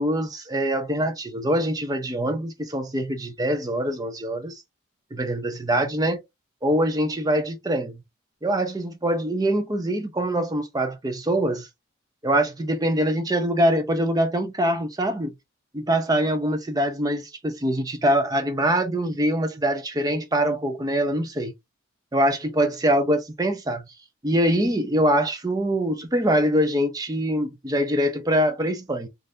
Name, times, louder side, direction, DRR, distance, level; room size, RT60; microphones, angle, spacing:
voice 1, 0.0-4.6 5.1-6.2 6.6-8.0 8.4-11.7 12.2-15.3 15.7-21.5 22.1-23.8 24.2-29.1, right 1 dB, 20° right, 0.5 m, -24 dB
3.4 x 2.6 x 2.6 m
head